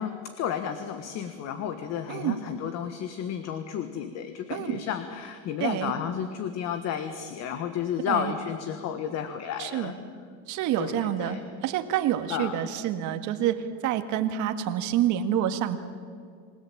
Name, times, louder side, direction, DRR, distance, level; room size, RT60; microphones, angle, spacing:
voice 1, 0.0-9.9 10.8-11.4 12.3-12.7, left 8 dB, 45° left, 8 dB, 1.6 m, -32 dB
voice 2, 4.5-4.8 5.6-5.9 8.1-8.3 9.6-9.9 10.5-15.8, right 11 dB, 50° right, 8 dB, 1.8 m, -28 dB
28.0 x 17.5 x 8.7 m, 2.2 s
cardioid pair, 150°, 38 cm